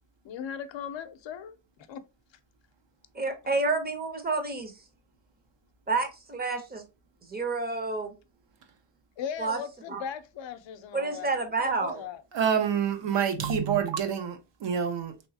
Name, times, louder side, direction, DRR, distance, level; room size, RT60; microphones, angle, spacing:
voice 1, 0.2-1.5 1.9-2.0 9.2-11.3 11.8-12.2, left 8 dB, 80° left, 0.6 m, -38 dB
voice 2, 3.2-4.7 5.9-6.8 7.3-8.1 9.4-9.6 9.9-10.0 10.9-12.0, right 3 dB, 20° right, 0.6 m, -29 dB
voice 3, 12.3-15.2, right 7 dB, 75° right, 0.7 m, -27 dB
3.1 x 3.0 x 2.7 m
wide cardioid pair, 150°, 44 cm